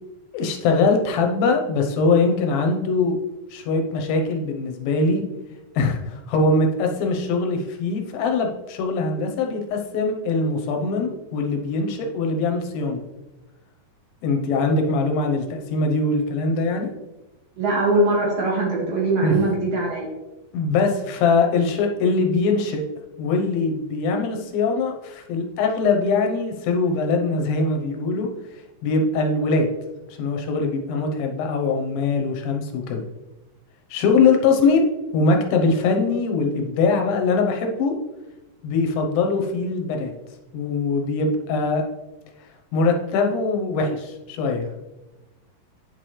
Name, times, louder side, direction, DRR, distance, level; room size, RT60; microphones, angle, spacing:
voice 1, 0.3-3.2 3.5-5.2 5.8-13.0 14.2-15.5 15.7-16.9 19.2-19.5 20.5-22.8 23.2-28.3 28.8-29.7 30.1-33.0 33.9-34.9 35.1-38.0 38.6-40.1 40.5-41.8 42.7-44.8, left 3 dB, 85° left, 3 dB, 2.8 m, -22 dB
voice 2, 17.6-20.1, right 2 dB, 50° right, -3 dB, 2.4 m, -21 dB
9.0 x 5.9 x 3.2 m, 1.0 s
omnidirectional pair, 4.0 m